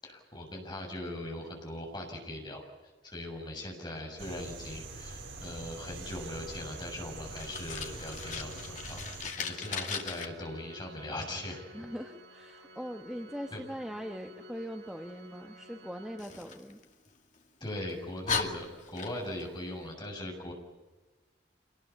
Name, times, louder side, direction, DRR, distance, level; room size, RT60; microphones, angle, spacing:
voice 1, 0.0-2.6 3.0-11.6 13.5-13.6 17.6-20.5, left 1 dB, 25° left, 1 dB, 7.2 m, -40 dB
sound 1, 4.2-9.3, right 3 dB, 80° right, 3.5 m, -44 dB
Organ, 6.0-16.8, equal, 60° right, 6.3 m, -53 dB
Fire, 7.3-10.3 16.2-17.4 17.9-18.0 18.3-19.5, left 5 dB, 40° left, 2.3 m, -37 dB
voice 2, 11.7-16.8, equal, 5° right, 3 dB, 1.2 m, -41 dB
27.0 x 19.5 x 8.6 m, 1.2 s
head